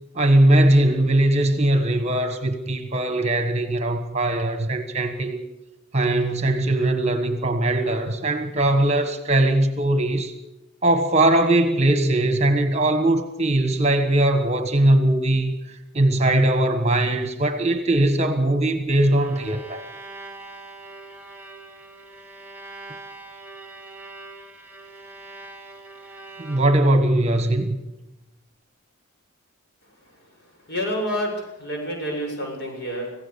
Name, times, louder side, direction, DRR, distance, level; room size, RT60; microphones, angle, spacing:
voice 1, 0.1-5.4 5.9-10.3 10.8-15.5 15.9-19.8 26.4-27.8, right 1 dB, 30° right, 1.4 m, -20 dB
Bowed string instrument, 19.2-27.0, right 2 dB, 10° right, 2.9 m, -42 dB
voice 2, 30.7-33.1, equal, 50° left, 7.3 m, -28 dB
26.0 x 16.5 x 7.0 m
head